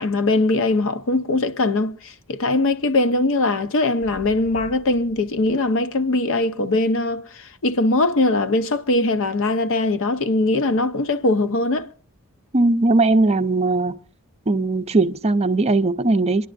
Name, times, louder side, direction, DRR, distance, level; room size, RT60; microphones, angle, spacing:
voice 1, 0.0-11.9, left 2 dB, 65° left, 0.7 m, -21 dB
sound 1, 4.0-5.6 6.4-6.6 12.5-12.6, equal, 10° left, 3.8 m, -45 dB
voice 2, 12.5-14.0 14.5-16.5, right 2 dB, 30° right, 0.5 m, -19 dB
27.0 x 11.0 x 2.6 m
head